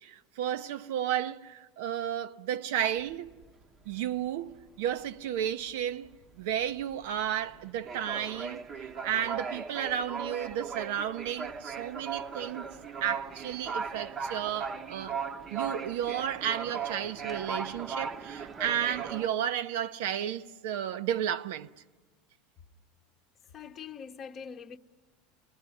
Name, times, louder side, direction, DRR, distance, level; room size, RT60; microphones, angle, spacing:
voice 1, 0.0-3.4 3.9-6.1 6.4-8.6 9.0-12.7 13.0-15.2 15.5-21.7, right 10 dB, 75° right, 0.8 m, -33 dB
sound 1, 3.0-4.2 4.5-4.8 5.0-19.3, right 6 dB, 25° right, 0.8 m, -38 dB
voice 2, 23.5-24.8, left 6 dB, 30° left, 0.9 m, -43 dB
28.0 x 21.0 x 9.9 m
supercardioid pair, 135°, 0 cm